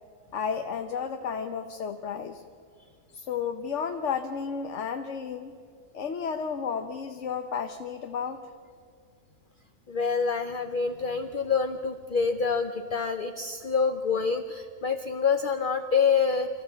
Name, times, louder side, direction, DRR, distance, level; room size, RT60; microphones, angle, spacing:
voice 1, 0.3-2.4 3.1-5.5 5.9-8.5, left 6 dB, 65° left, 6 dB, 1.2 m, -32 dB
voice 2, 9.9-16.5, left 5 dB, 45° left, 7 dB, 0.8 m, -26 dB
26.5 x 14.5 x 7.6 m, 2.3 s
omnidirectional pair, 1.3 m